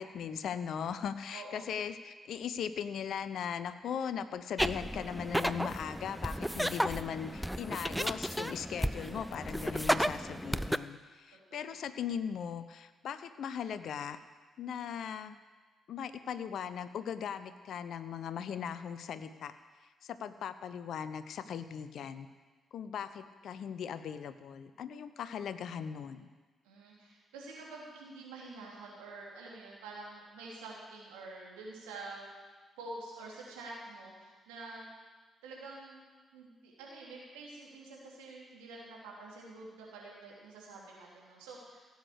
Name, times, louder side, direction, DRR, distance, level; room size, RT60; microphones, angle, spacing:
voice 1, 0.0-14.2 14.6-15.4 15.9-19.5 20.0-22.3 22.7-26.3, left 8 dB, 65° left, 12 dB, 0.6 m, -39 dB
voice 2, 1.3-1.6 11.5-11.7 26.6-32.2 32.8-34.9 35.4-36.0 36.3-41.8, right 3 dB, 80° right, -4 dB, 3.2 m, -47 dB
sound 1, 4.6-10.8, equal, ahead, 0.5 m, -33 dB
16.5 x 8.1 x 6.6 m, 1.3 s
hypercardioid pair, 40°, 0 cm